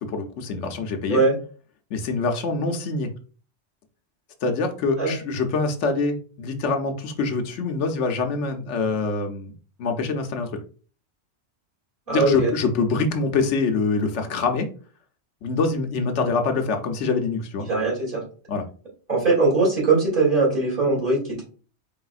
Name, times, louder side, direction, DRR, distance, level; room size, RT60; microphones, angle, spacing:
voice 1, 0.0-1.2 1.9-3.1 4.4-9.5 9.8-10.5 12.1-14.7 15.4-17.6 18.5-18.6, left 4 dB, 80° left, 4 dB, 1.0 m, -25 dB
voice 2, 12.1-12.5 17.6-18.2 19.1-21.4, right 3 dB, 45° right, -6 dB, 2.6 m, -21 dB
4.7 x 3.5 x 2.4 m, 0.38 s
omnidirectional pair, 1.2 m